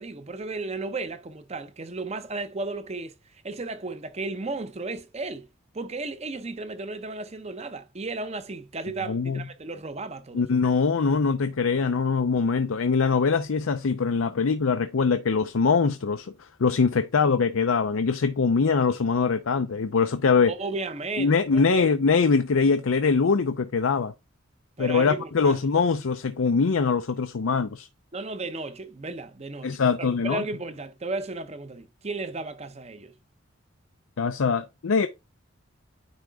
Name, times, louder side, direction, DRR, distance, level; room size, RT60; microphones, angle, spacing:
voice 1, 0.0-5.5 5.7-10.4 20.5-21.9 24.8-25.6 28.1-33.1, right 3 dB, 30° right, 0.7 m, -34 dB
voice 2, 9.1-9.4 10.3-20.5 21.2-24.1 24.8-27.9 29.6-30.4 34.2-35.1, left 5 dB, 85° left, 0.5 m, -23 dB
9.6 x 3.7 x 3.5 m
head